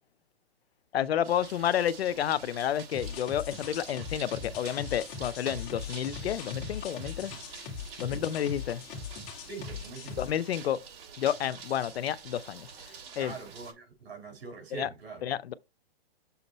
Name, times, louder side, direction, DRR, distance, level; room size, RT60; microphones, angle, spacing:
voice 1, 0.9-7.3 8.0-8.8 10.2-10.8 11.2-12.7 13.2-13.3 14.7-14.9 15.2-15.5, left 10 dB, 80° left, 0.7 m, -30 dB
sound 1, 1.2-13.7, right 6 dB, 65° right, 5.1 m, -48 dB
sound 2, 2.9-10.3, left 6 dB, 30° left, 2.1 m, -40 dB
voice 2, 9.5-10.2 11.4-11.5 13.2-15.2, right 5 dB, 85° right, 4.8 m, -43 dB
7.1 x 3.9 x 4.3 m
hypercardioid pair, 145°, 31 cm